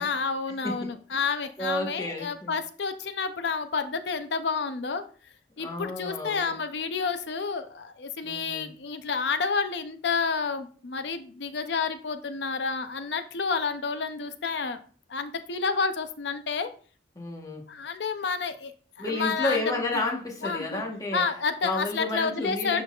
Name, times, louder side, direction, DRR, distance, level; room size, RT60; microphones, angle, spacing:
voice 1, 0.0-5.0 5.6-14.8 15.1-16.7 17.7-18.7 19.0-20.0 20.4-20.8 21.1-22.8, left 5 dB, 75° left, 10 dB, 0.6 m, -30 dB
voice 2, 0.6-1.2 1.6-2.5 5.6-6.5 8.2-8.7 17.1-17.6 19.0-21.2 21.6-22.8, left 2 dB, 20° left, 0 dB, 1.2 m, -31 dB
11.0 x 4.0 x 2.4 m, 0.41 s
head